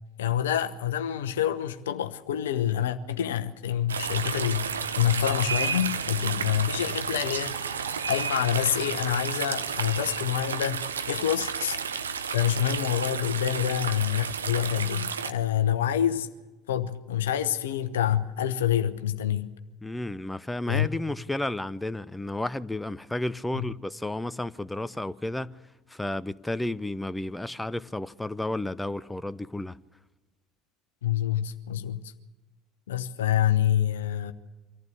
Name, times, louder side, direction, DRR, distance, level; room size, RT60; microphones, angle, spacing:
voice 1, 0.2-11.8 12.3-16.3 16.7-19.5 20.7-20.9 23.5-23.6 31.0-32.1 32.9-34.3, left 10 dB, 70° left, 1.0 m, -27 dB
sound 1, 3.9-15.3, right 6 dB, 80° right, 0.9 m, -32 dB
Fill (with liquid), 7.1-14.1, right 6 dB, 50° right, 6.1 m, -54 dB
voice 2, 19.8-25.6 25.9-29.8, left 1 dB, 5° left, 0.7 m, -32 dB
25.0 x 15.0 x 8.1 m
figure-of-eight pair, 65°, 0 cm